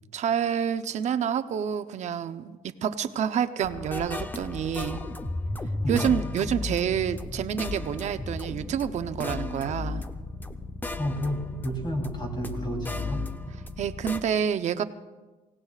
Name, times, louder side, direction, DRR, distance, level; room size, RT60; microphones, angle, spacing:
voice 1, 0.1-5.0 5.9-10.0 13.8-14.8, right 8 dB, 55° right, 10 dB, 0.8 m, -28 dB
sound 1, 3.6-14.2, left 2 dB, 15° left, 0.8 m, -34 dB
voice 2, 11.0-13.2, equal, 30° left, 1 dB, 3.5 m, -31 dB
25.0 x 17.5 x 2.4 m, 1.2 s
cardioid pair, 125°, 14 cm